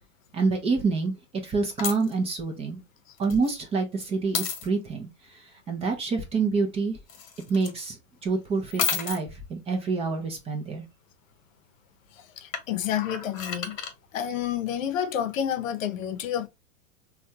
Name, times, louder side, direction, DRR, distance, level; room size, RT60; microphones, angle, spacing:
voice 1, 0.3-1.1 1.4-2.8 3.2-5.1 5.7-7.0 7.5-8.0 8.2-10.8, right 4 dB, 15° right, 0.4 m, -27 dB
sound 1, 1.8-2.1 3.2-3.5 4.3-4.7 7.1-7.8 8.7-9.2 12.5-13.9 15.8-15.9, left 7 dB, 45° left, 1.1 m, -31 dB
voice 2, 12.4-13.8 14.1-16.5, left 9 dB, 75° left, 0.6 m, -29 dB
3.4 x 2.2 x 2.7 m
hypercardioid pair, 125°, 39 cm